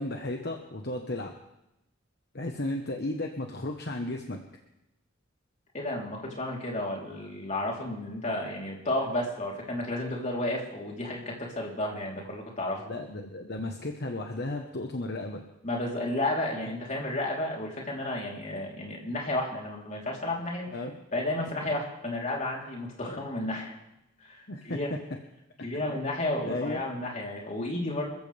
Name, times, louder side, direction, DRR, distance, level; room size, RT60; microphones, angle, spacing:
voice 1, 0.0-1.3 2.3-4.4 12.9-15.4 16.6-16.7 20.7-20.9 21.7-21.8 23.0-23.2 24.5-24.8 25.7-25.9 26.4-26.8, left 2 dB, 55° left, 3 dB, 1.3 m, -34 dB
voice 2, 5.7-12.8 15.6-20.7 21.1-23.8 24.2-24.4 24.6-24.9 25.6-28.1, left 1 dB, 35° left, -2 dB, 3.7 m, -32 dB
27.0 x 14.5 x 3.5 m, 0.90 s
head